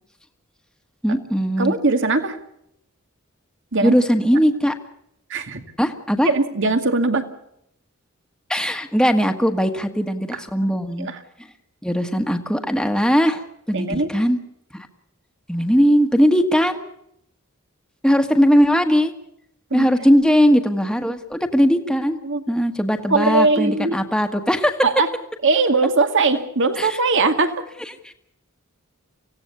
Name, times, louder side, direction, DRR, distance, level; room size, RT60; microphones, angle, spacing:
voice 1, 1.0-1.7 3.8-4.7 5.8-6.3 8.5-11.1 11.8-13.4 13.7-14.4 14.7-14.9 15.5-16.8 18.0-19.1 19.7-22.2 22.5-24.8 26.8-27.0 28.0-28.1, equal, 5° left, 5 dB, 1.6 m, -19 dB
voice 2, 1.6-2.4 3.7-4.0 5.3-5.6 6.2-7.3 10.3-10.4 11.0-11.2 13.7-14.3 19.7-20.1 22.2-22.4 23.1-24.0 24.8-25.1 25.4-27.7, right 3 dB, 60° right, 8 dB, 2.1 m, -20 dB
25.5 x 17.0 x 7.0 m, 0.75 s
head